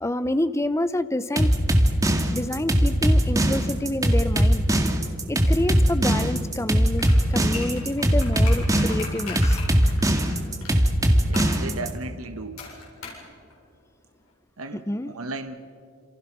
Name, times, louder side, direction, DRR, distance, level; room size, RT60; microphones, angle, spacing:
voice 1, 0.0-1.5 2.3-4.6 5.3-9.6 14.9-15.1, left 1 dB, 15° left, 13 dB, 0.7 m, -27 dB
sound 1, 1.4-11.9, equal, 15° right, 2.1 m, -20 dB
sound 2, 6.9-10.7 11.3-11.6 12.6-13.3 13.5-13.6, left 4 dB, 75° left, 8.0 m, -38 dB
voice 2, 11.2-12.6 14.6-15.5, right 3 dB, 75° right, 7 dB, 1.5 m, -35 dB
28.5 x 28.0 x 6.2 m, 2.2 s
head